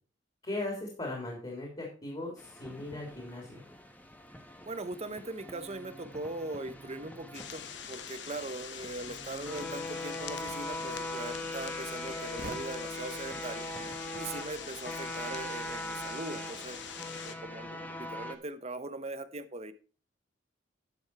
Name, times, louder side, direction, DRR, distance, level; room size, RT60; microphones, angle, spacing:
voice 1, 0.4-3.6, left 2 dB, 30° left, -1 dB, 3.3 m, -38 dB
sound 1, 2.4-18.4, left 1 dB, 10° left, 1.2 m, -41 dB
voice 2, 4.7-7.6 7.9-13.7 14.1-16.8 17.2-19.7, right 2 dB, 35° right, 12 dB, 0.9 m, -40 dB
sound 2, 7.3-17.4, left 8 dB, 70° left, 1.0 m, -44 dB
sound 3, 8.8-16.1, right 2 dB, 55° right, 1.4 m, -53 dB
11.0 x 7.1 x 4.7 m, 0.37 s
head